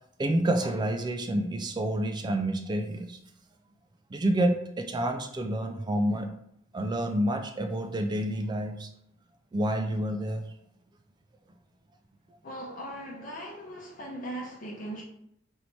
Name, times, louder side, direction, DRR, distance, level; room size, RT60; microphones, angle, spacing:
voice 1, 0.2-3.2 4.1-6.3 6.7-8.9 9.5-10.4, right 1 dB, 25° right, 6 dB, 0.3 m, -28 dB
voice 2, 12.4-15.0, right 1 dB, 45° left, -2 dB, 0.8 m, -39 dB
4.5 x 2.7 x 4.3 m, 0.75 s
head